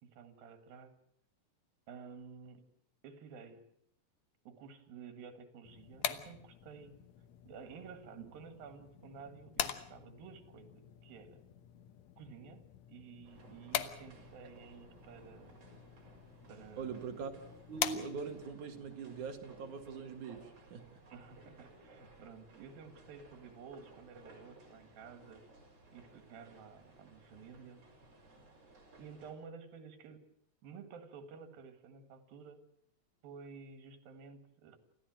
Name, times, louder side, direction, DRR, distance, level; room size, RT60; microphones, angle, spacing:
voice 1, 0.0-0.9 1.9-2.6 3.0-3.6 4.5-7.0 7.5-11.4 12.2-12.6 12.9-15.6 16.5-17.0 21.1-25.4 25.9-27.8 29.0-30.2 30.6-32.6 33.2-34.8, right 6 dB, 85° right, 9 dB, 3.7 m, -52 dB
sound 1, 5.6-18.5, left 10 dB, 65° left, 2.0 m, -44 dB
sound 2, 13.2-29.3, right 2 dB, 45° right, 5.8 m, -59 dB
voice 2, 16.8-17.3 17.7-20.9, right 5 dB, 60° right, 6 dB, 3.1 m, -42 dB
28.5 x 15.0 x 7.7 m, 0.69 s
omnidirectional pair, 4.0 m